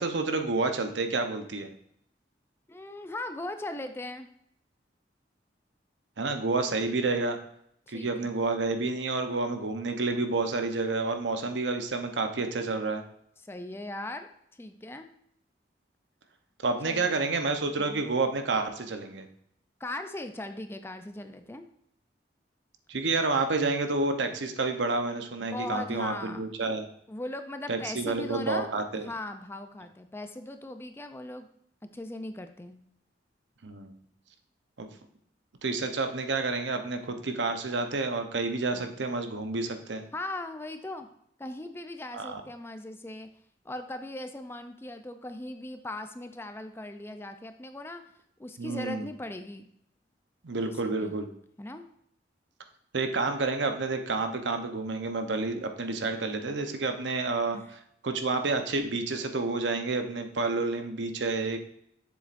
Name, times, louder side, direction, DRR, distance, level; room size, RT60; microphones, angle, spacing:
voice 1, 0.0-1.7 6.2-7.4 7.9-13.0 16.6-19.3 22.9-26.9 27.7-29.1 33.6-33.9 34.8-34.9 35.6-40.0 42.1-42.4 48.6-49.1 50.4-51.3 52.9-61.6, right 3 dB, 75° right, 7 dB, 0.8 m, -29 dB
voice 2, 2.7-4.3 7.9-8.4 13.4-14.3 14.6-15.1 16.8-17.1 17.8-18.0 19.8-21.7 25.4-26.4 27.1-28.7 29.0-31.5 31.8-32.8 40.1-41.1 41.4-43.3 43.6-48.0 48.4-49.7 50.7-51.1 51.6-51.8 57.5-57.7, left 1 dB, 15° left, 8 dB, 0.4 m, -39 dB
7.5 x 7.1 x 2.5 m, 0.70 s
head